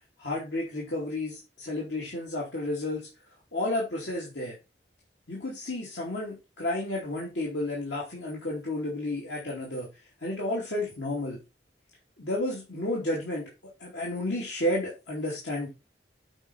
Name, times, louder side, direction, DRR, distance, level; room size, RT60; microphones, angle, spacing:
voice 1, 0.2-3.1 3.5-4.6 5.3-9.9 10.2-11.4 12.2-13.4 13.8-15.7, left 1 dB, 80° left, -4 dB, 2.6 m, -31 dB
8.1 x 5.1 x 4.2 m, 0.27 s
head